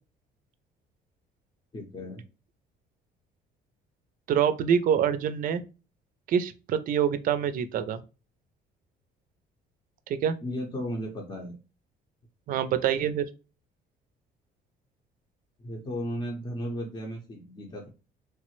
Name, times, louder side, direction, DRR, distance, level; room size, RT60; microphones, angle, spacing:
voice 1, 1.7-2.2 10.4-11.6 15.6-17.9, equal, 25° left, -1 dB, 0.7 m, -35 dB
voice 2, 4.3-5.6 6.3-8.0 10.1-10.3 12.5-13.3, right 8 dB, 55° right, 12 dB, 0.4 m, -25 dB
3.2 x 2.0 x 3.0 m, 0.32 s
cardioid pair, 110°, 17 cm